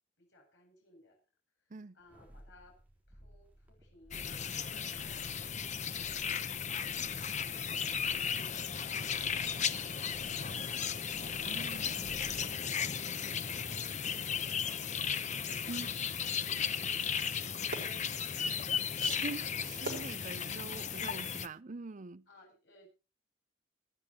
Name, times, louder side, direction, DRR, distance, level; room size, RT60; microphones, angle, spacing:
voice 1, 0.2-1.2 1.9-2.8 3.1-7.8 8.1-11.6 12.0-12.9 13.4-16.9 17.2-19.3 19.8-20.5 22.3-22.9, left 1 dB, 70° left, 7.7 m, -61 dB
sound 1, 2.0-12.7 13.1-13.2, equal, 10° right, 4.0 m, -58 dB
sound 2, 4.1-21.5, left 7 dB, 40° left, 0.9 m, -35 dB
sound 3, 5.2-21.0, right 2 dB, 60° right, 4.3 m, -54 dB
voice 2, 11.4-12.1 15.7-15.9 19.0-22.2, right 3 dB, 45° right, 0.6 m, -44 dB
26.5 x 10.5 x 3.0 m
head